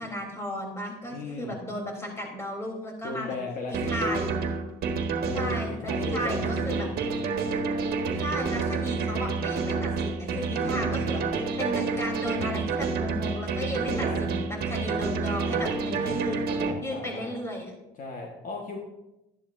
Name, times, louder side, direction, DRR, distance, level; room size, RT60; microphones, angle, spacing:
voice 1, 0.0-3.4 3.7-4.3 5.3-6.9 8.2-16.4 16.8-17.7, left 1 dB, 15° left, -1 dB, 3.6 m, -34 dB
voice 2, 1.1-1.6 3.0-4.2 5.2-6.5 6.8-7.0 10.6-11.0 13.9-14.2 15.9-17.3 18.0-18.8, left 3 dB, 50° left, 0 dB, 1.5 m, -36 dB
sound 1, 3.7-16.7, right 4 dB, 65° right, 1.5 m, -29 dB
13.0 x 10.5 x 2.7 m, 0.93 s
cardioid pair, 110°, 17 cm